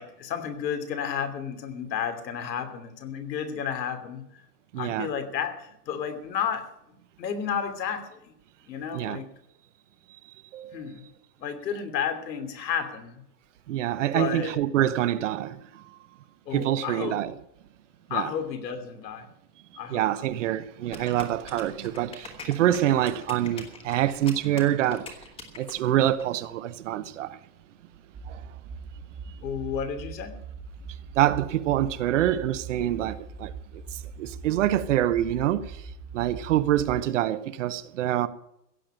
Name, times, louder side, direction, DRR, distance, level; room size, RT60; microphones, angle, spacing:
voice 1, 0.0-4.2 4.8-8.2 8.7-9.3 10.7-11.0 11.4-13.2 14.1-14.6 16.5-17.2 18.1-19.3 19.8-20.0 29.4-30.3, left 7 dB, 85° left, 3.0 m, -32 dB
voice 2, 4.7-5.1 8.9-9.2 10.5-10.9 13.7-15.8 16.5-17.4 18.1-18.3 19.9-25.2 25.5-27.4 28.3-28.4 31.1-35.8 36.1-38.3, right 12 dB, 50° right, 0.8 m, -26 dB
sound 1, 20.9-26.2, left 4 dB, 10° left, 1.3 m, -43 dB
sound 2, 28.1-37.0, right 5 dB, 15° right, 1.5 m, -41 dB
16.0 x 7.2 x 8.9 m
supercardioid pair, 170°, 49 cm